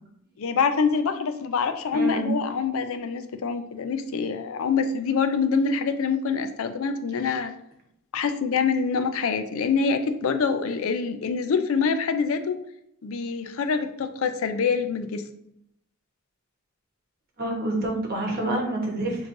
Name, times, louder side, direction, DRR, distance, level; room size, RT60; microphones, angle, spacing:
voice 1, 0.4-7.5 8.1-12.6 13.0-15.3, left 5 dB, 70° left, 8 dB, 0.4 m, -25 dB
voice 2, 1.9-2.3 17.4-19.3, right 1 dB, 40° right, -1 dB, 1.1 m, -27 dB
6.3 x 3.0 x 2.6 m, 0.77 s
head